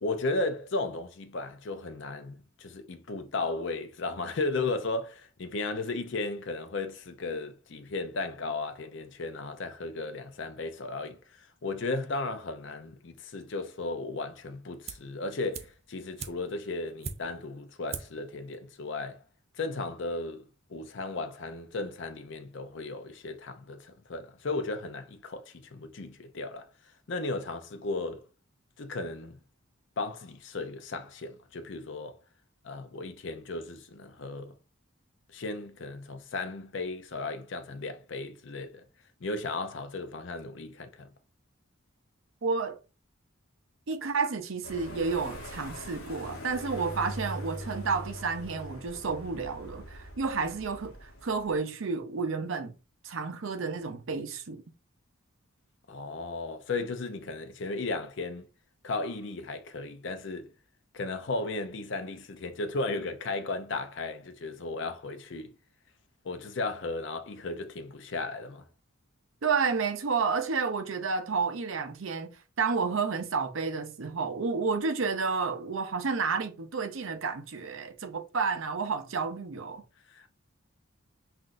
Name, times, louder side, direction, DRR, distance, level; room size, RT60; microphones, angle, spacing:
voice 1, 0.0-19.2 19.6-26.7 27.1-28.2 28.8-29.4 30.0-32.2 32.6-34.5 35.3-38.8 39.2-41.1 55.9-58.5 58.8-60.5 60.9-65.5 66.2-68.7 80.1-80.3, left 3 dB, 55° left, 0.5 m, -35 dB
sound 1, 14.9-15.2 15.5-17.5 17.9-18.3 18.5-18.6, right 6 dB, 30° right, 0.3 m, -41 dB
voice 2, 42.4-42.8 43.9-52.7 53.0-54.6 69.4-79.8, right 5 dB, 70° right, 0.6 m, -31 dB
sound 2, 44.6-51.6, equal, 75° left, 1.0 m, -42 dB
5.7 x 2.5 x 2.5 m
head